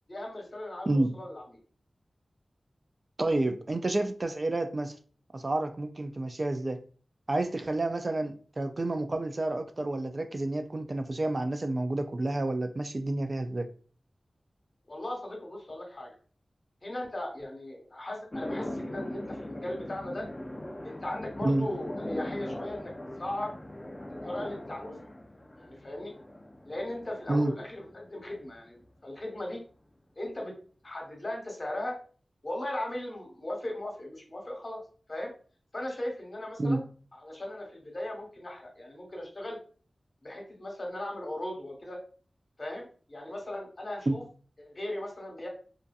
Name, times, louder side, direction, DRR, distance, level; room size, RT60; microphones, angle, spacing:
voice 1, 0.1-1.4 14.9-16.1 16.8-20.3 20.8-22.9 23.2-23.6 24.2-25.0 25.6-26.1 26.6-29.6 30.2-30.5 30.8-32.0 32.4-34.8 35.1-35.3 35.7-36.8 37.2-39.6 40.2-42.0 42.6-44.2 44.6-45.5, left 1 dB, 50° left, 0 dB, 1.1 m, -37 dB
voice 2, 3.2-4.9 5.3-6.8 7.3-13.7 21.4-21.7 27.3-27.5 36.6-36.8 44.1-44.2, right 2 dB, 45° right, 7 dB, 0.3 m, -29 dB
sound 1, 18.3-28.7, left 1 dB, 25° left, 0.5 m, -40 dB
2.5 x 2.4 x 2.3 m, 0.41 s
cardioid pair, 45°, 0 cm